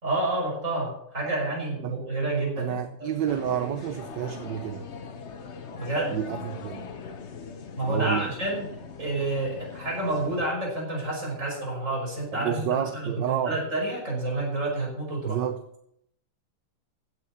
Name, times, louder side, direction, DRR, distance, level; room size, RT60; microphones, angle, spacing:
voice 1, 0.0-3.1 5.8-6.2 7.8-15.4, right 2 dB, 35° right, 6.1 m, -29 dB
voice 2, 2.6-4.9 6.1-6.9 7.8-8.3 12.3-13.6 15.3-15.6, right 9 dB, 65° right, 1.3 m, -29 dB
sound 1, 3.3-10.5, left 5 dB, 45° left, 0.9 m, -41 dB
16.0 x 6.7 x 8.5 m
omnidirectional pair, 2.3 m